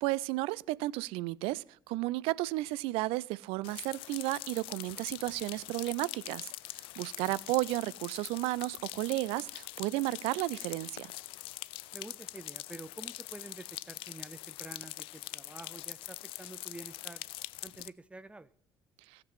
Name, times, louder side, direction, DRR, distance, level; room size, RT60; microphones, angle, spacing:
voice 1, 0.0-11.1, right 20 dB, 55° right, 0.4 m, -33 dB
sound 1, 3.6-17.9, left 18 dB, 55° left, 0.4 m, -43 dB
voice 2, 11.9-17.2 17.6-18.5, right 2 dB, 10° right, 0.7 m, -48 dB
16.5 x 7.4 x 4.5 m
figure-of-eight pair, 55°, 11 cm